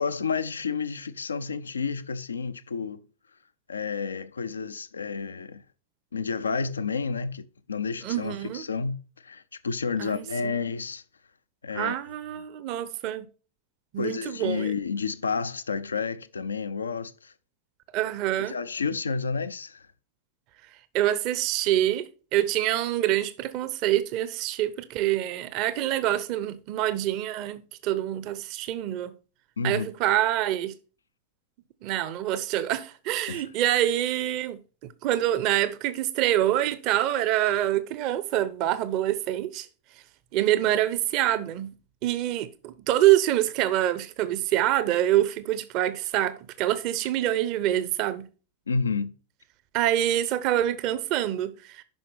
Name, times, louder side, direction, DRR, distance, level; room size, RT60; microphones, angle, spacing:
voice 1, 0.0-3.0 3.7-5.6 6.1-11.0 11.6-12.0 14.0-17.3 18.4-19.9 29.6-29.9 33.3-33.5 48.7-49.1, left 5 dB, 75° left, 0.6 m, -30 dB
voice 2, 8.0-8.6 10.0-10.5 11.7-13.3 13.9-14.7 17.9-18.5 20.9-29.1 29.6-30.7 31.8-34.6 35.0-39.7 40.3-41.7 42.0-48.3 49.7-51.8, right 13 dB, 40° right, 0.8 m, -26 dB
10.5 x 5.7 x 3.4 m
figure-of-eight pair, 90°, 0 cm